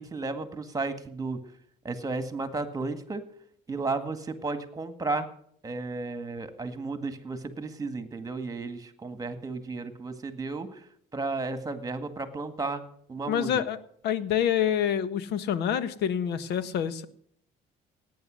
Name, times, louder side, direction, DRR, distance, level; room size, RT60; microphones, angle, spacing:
voice 1, 0.0-1.4 1.8-3.2 3.7-5.3 5.6-10.8 11.1-12.8 13.1-13.5, right 3 dB, 20° right, 10 dB, 1.9 m, -33 dB
voice 2, 13.3-13.8 14.0-17.1, left 9 dB, 80° left, 14 dB, 1.4 m, -27 dB
18.0 x 9.4 x 6.4 m, 0.63 s
cardioid pair, 110°, 17 cm